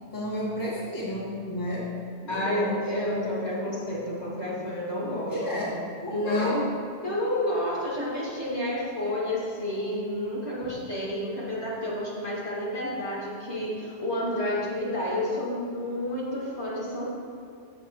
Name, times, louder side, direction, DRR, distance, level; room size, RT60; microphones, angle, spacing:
voice 1, 0.1-1.9 2.2-2.8 5.3-6.6 10.6-10.8, left 1 dB, 15° left, -5 dB, 1.6 m, -32 dB
voice 2, 2.3-5.7 6.1-6.6 7.0-17.0, left 1 dB, 60° left, -7 dB, 2.6 m, -30 dB
14.5 x 7.2 x 3.0 m, 2.3 s
omnidirectional pair, 1.3 m